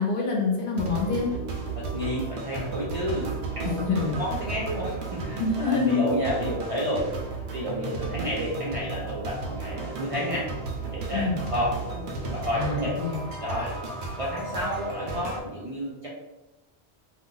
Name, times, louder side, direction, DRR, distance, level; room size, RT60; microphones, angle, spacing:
voice 1, 0.0-1.3 3.8-4.2 5.4-6.1 11.1-11.4 12.5-13.2, left 4 dB, 60° left, -1 dB, 0.7 m, -26 dB
sound 1, 0.8-15.4, right 3 dB, 85° right, 0.9 m, -34 dB
voice 2, 1.8-7.1 7.5-10.5 10.9-11.7 12.3-13.0 13.4-13.7 14.2-16.1, equal, 45° right, -6 dB, 0.5 m, -31 dB
2.4 x 2.1 x 3.7 m, 1.0 s
omnidirectional pair, 1.1 m